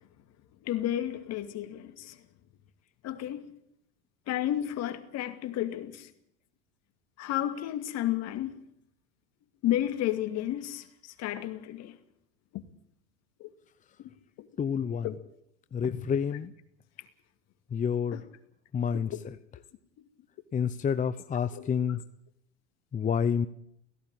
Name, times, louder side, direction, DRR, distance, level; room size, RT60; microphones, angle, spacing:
voice 1, 0.7-2.1 3.0-3.5 4.3-6.0 7.2-8.6 9.6-10.8 11.2-11.9 14.4-14.5 15.0-15.1 15.8-16.0 18.1-18.2 19.1-19.2 21.6-21.7, left 12 dB, 50° left, 2.4 m, -32 dB
voice 2, 14.6-15.1 15.7-16.5 17.7-18.2 18.7-19.3 20.5-22.0 22.9-23.5, left 7 dB, 25° left, 0.9 m, -29 dB
17.0 x 16.5 x 9.0 m
supercardioid pair, 110°, 32 cm